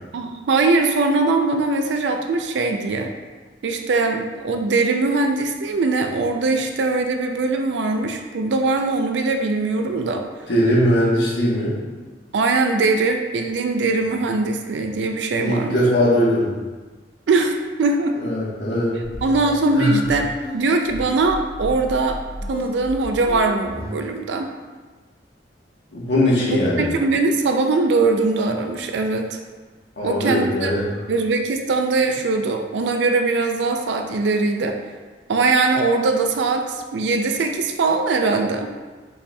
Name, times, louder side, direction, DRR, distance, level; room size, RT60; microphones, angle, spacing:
voice 1, 0.1-3.1 3.6-10.2 12.3-15.8 17.3-18.2 19.2-22.2 22.5-24.5 26.5-29.4 30.0-30.7 31.1-34.8 35.3-38.7, right 3 dB, 80° right, 4 dB, 0.4 m, -21 dB
voice 2, 10.5-11.7 15.4-16.5 18.2-18.9 19.7-19.9 25.9-26.9 30.0-30.8, equal, 80° left, -5 dB, 1.2 m, -20 dB
sound 1, 18.9-24.0, equal, 55° left, 0.7 m, -33 dB
5.6 x 4.2 x 2.3 m, 1.3 s
head